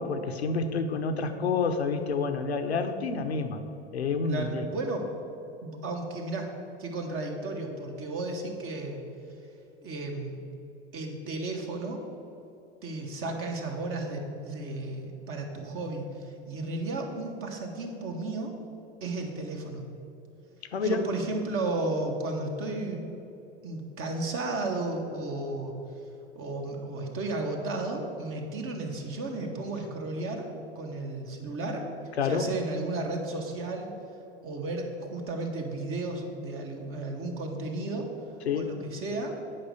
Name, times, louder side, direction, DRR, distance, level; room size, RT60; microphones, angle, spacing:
voice 1, 0.0-3.6 3.9-4.7 20.7-21.0 32.2-32.5 38.4-38.8, left 4 dB, 90° left, 7 dB, 0.7 m, -28 dB
voice 2, 4.2-5.1 5.6-6.5 6.8-9.0 9.8-10.4 10.9-12.0 12.8-18.5 19.0-19.8 20.8-23.1 23.6-25.7 26.3-30.5 30.7-31.8 32.2-33.9 34.4-38.1 38.5-39.4, right 2 dB, 45° right, 2 dB, 1.7 m, -33 dB
8.7 x 5.3 x 6.9 m, 2.9 s
hypercardioid pair, 80°, 31 cm